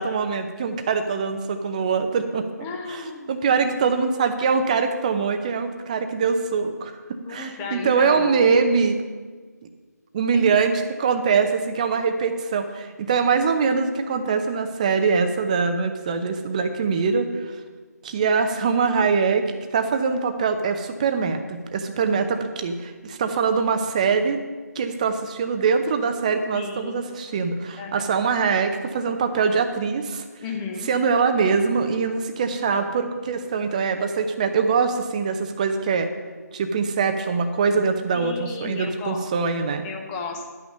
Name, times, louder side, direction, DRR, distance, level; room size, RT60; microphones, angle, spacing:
voice 1, 0.0-2.5 2.9-9.0 10.1-17.6 18.0-24.4 24.7-30.3 30.9-36.1 36.5-39.8, right 5 dB, 25° right, 8 dB, 0.7 m, -23 dB
voice 2, 2.6-3.3 7.2-8.5 10.3-10.5 26.5-27.0 27.8-28.1 30.4-30.9 38.1-39.2 39.8-40.5, left 4 dB, 15° left, 2 dB, 0.8 m, -34 dB
11.5 x 6.1 x 6.5 m, 1.4 s
figure-of-eight pair, 155°, 9 cm